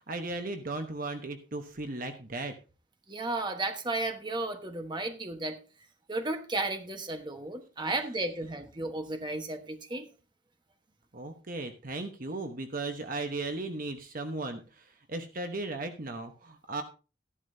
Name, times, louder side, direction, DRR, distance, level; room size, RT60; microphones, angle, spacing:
voice 1, 0.1-2.5 11.1-16.8, right 2 dB, 45° right, 6 dB, 1.0 m, -36 dB
voice 2, 3.1-5.6 6.1-10.1, right 2 dB, 25° right, 6 dB, 1.2 m, -34 dB
14.0 x 11.0 x 2.7 m, 0.33 s
head